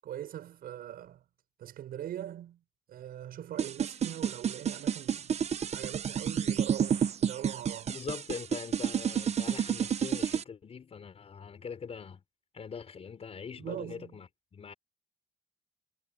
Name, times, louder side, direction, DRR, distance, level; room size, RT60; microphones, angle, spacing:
voice 1, 0.0-1.2 1.6-2.6 2.9-5.5 5.7-8.0 13.6-14.2, right 11 dB, 60° right, 6.1 m, -42 dB
sound 1, 3.6-10.4, right 8 dB, 40° right, 1.1 m, -30 dB
voice 2, 7.9-12.2 12.5-14.7, left 6 dB, 35° left, 5.4 m, -43 dB
cardioid pair, 110°, 17 cm